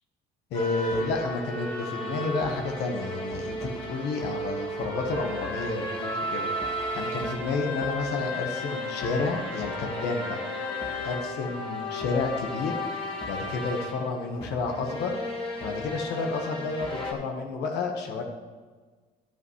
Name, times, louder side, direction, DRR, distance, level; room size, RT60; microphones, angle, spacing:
voice 1, 0.5-6.5 6.9-10.4 11.0-12.8 13.2-15.1 15.6-18.2, left 3 dB, 80° left, 2 dB, 1.3 m, -30 dB
sound 1, 0.5-17.1, left 1 dB, 30° left, 1.8 m, -34 dB
11.0 x 9.1 x 3.2 m, 1.4 s
cardioid pair, 110°, 17 cm